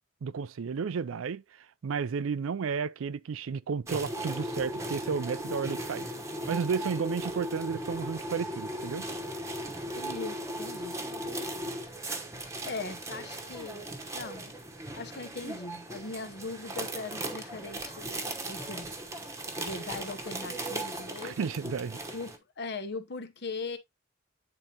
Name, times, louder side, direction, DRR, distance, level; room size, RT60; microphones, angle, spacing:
voice 1, 0.2-6.1 6.5-9.1 21.2-22.0, right 5 dB, 80° right, 0.4 m, -32 dB
sound 1, 3.9-22.4, right 1 dB, 15° right, 1.0 m, -37 dB
voice 2, 10.0-11.0 11.8-12.0 12.6-13.8 14.1-14.5 14.9-18.9 19.6-21.5 22.1-23.8, left 3 dB, 55° left, 1.0 m, -40 dB
8.9 x 3.8 x 2.8 m
head